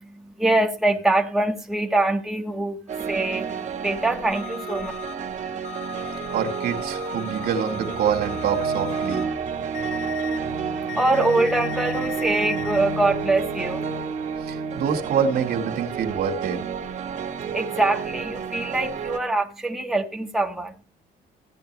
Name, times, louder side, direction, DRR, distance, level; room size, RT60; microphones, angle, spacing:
voice 1, 0.0-4.9 10.8-13.8 17.4-20.7, right 2 dB, ahead, 1.3 m, -24 dB
sound 1, 2.9-19.2, right 6 dB, 45° right, 1.6 m, -30 dB
sound 2, 4.3-5.1 5.6-9.2 9.7-10.4 10.9-12.8, left 10 dB, 45° left, 1.8 m, -37 dB
voice 2, 6.3-9.2 14.5-16.6, right 7 dB, 70° right, 2.1 m, -26 dB
15.0 x 8.8 x 3.4 m
cardioid pair, 110°, 17 cm